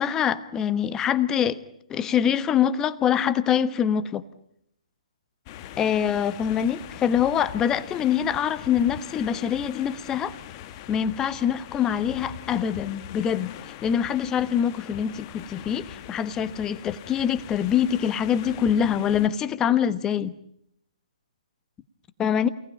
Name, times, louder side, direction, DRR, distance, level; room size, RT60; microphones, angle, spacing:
voice 1, 0.0-1.6 1.9-4.2 5.8-10.3 10.9-20.3 22.2-22.5, left 9 dB, 15° left, 13 dB, 1.1 m, -24 dB
sound 1, 5.5-19.3, left 11 dB, 30° left, 1.4 m, -42 dB
29.0 x 19.0 x 8.8 m, 0.74 s
figure-of-eight pair, 135°, 4 cm